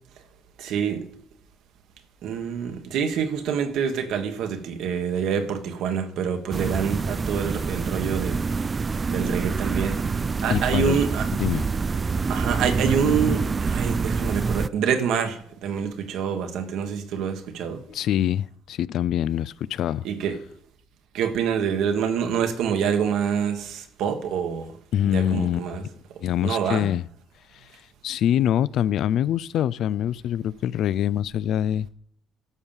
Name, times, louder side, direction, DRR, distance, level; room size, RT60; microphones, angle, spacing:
voice 1, 0.6-1.1 2.2-8.4 9.1-10.0 10.4-11.3 12.3-17.8 20.0-20.4 21.1-24.8 25.1-25.8 26.1-26.9, right 7 dB, 80° right, 1.4 m, -26 dB
sound 1, 6.5-14.7, right 4 dB, 35° right, 0.3 m, -26 dB
voice 2, 10.5-11.0 11.4-11.7 17.9-20.1 24.9-25.8 26.2-27.0 27.5-31.9, left 11 dB, 70° left, 0.3 m, -25 dB
12.5 x 5.3 x 7.3 m
supercardioid pair, 75°, 0 cm